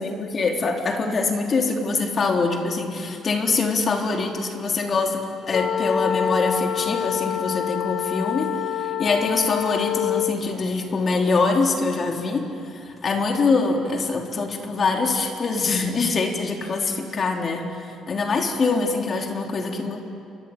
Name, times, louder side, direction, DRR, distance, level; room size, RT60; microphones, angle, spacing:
voice 1, 0.0-20.0, left 4 dB, 35° left, 2 dB, 3.5 m, -24 dB
sound 1, 5.5-10.4, left 9 dB, 55° left, 1.5 m, -26 dB
29.0 x 23.5 x 8.7 m, 2.5 s
cardioid pair, 125°, 0 cm